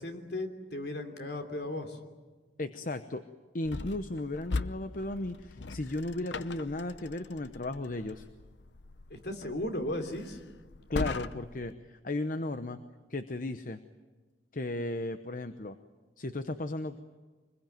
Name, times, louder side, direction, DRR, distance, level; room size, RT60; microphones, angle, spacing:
voice 1, 0.0-2.0 9.1-10.4, left 1 dB, 65° left, 5 dB, 3.1 m, -36 dB
voice 2, 2.6-3.2 3.5-8.2 10.9-12.8 13.1-13.8 14.5-15.8 16.2-17.0, left 2 dB, 50° left, 10 dB, 0.9 m, -35 dB
sound 1, 3.6-11.7, left 3 dB, 85° left, 0.8 m, -40 dB
25.0 x 21.5 x 9.3 m, 1.3 s
head